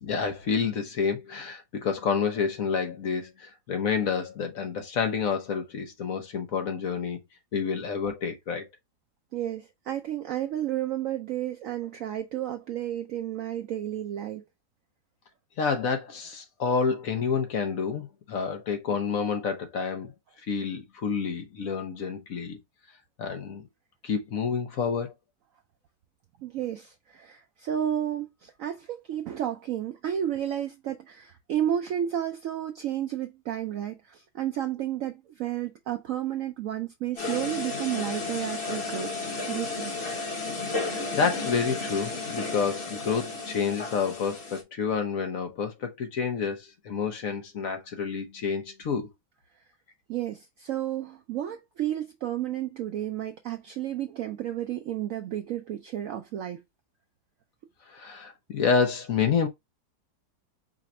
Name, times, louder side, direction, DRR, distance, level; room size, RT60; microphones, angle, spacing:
voice 1, 0.0-7.2 7.5-8.7 15.6-20.1 20.5-22.6 23.2-23.6 24.0-25.1 40.8-49.1 57.9-59.5, left 6 dB, 60° left, 1.1 m, -29 dB
voice 2, 9.3-14.4 26.4-39.1 39.5-39.9 50.1-56.6, right 11 dB, 75° right, 0.7 m, -32 dB
sound 1, 37.2-44.6, left 3 dB, 40° left, 1.4 m, -33 dB
5.0 x 2.4 x 4.1 m
omnidirectional pair, 1.9 m